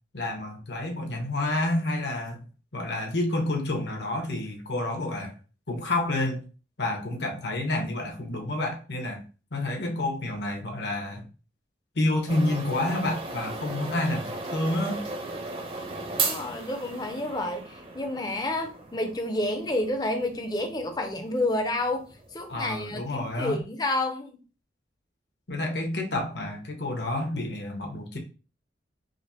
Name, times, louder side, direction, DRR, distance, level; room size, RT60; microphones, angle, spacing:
voice 1, 0.1-2.4 2.7-5.3 5.7-6.5 6.8-9.2 9.5-11.2 11.9-15.1 22.5-23.6 25.5-28.2, left 2 dB, 65° left, 0.9 m, -29 dB
sound 1, 12.3-23.4, right 3 dB, 30° right, 0.5 m, -36 dB
voice 2, 16.2-24.4, left 1 dB, 20° left, 0.5 m, -30 dB
5.0 x 2.0 x 2.8 m
head